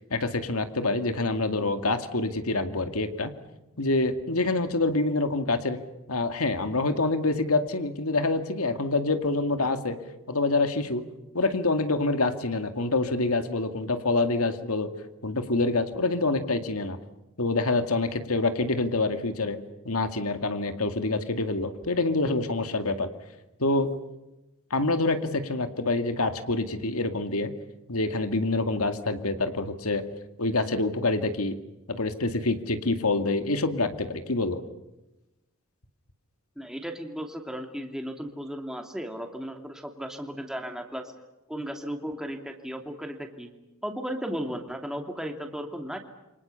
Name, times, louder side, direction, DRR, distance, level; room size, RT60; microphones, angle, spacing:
voice 1, 0.1-3.3 3.8-5.8 6.1-10.0 10.3-11.0 11.3-14.9 15.2-17.0 17.4-19.6 19.8-23.1 23.6-23.9 24.7-27.5 27.9-30.0 30.4-31.6 31.9-34.6, left 2 dB, 80° left, 8 dB, 2.3 m, -26 dB
voice 2, 36.6-41.1 41.5-43.5 43.8-46.0, equal, 5° right, 4 dB, 2.7 m, -35 dB
28.5 x 25.5 x 7.0 m, 0.99 s
head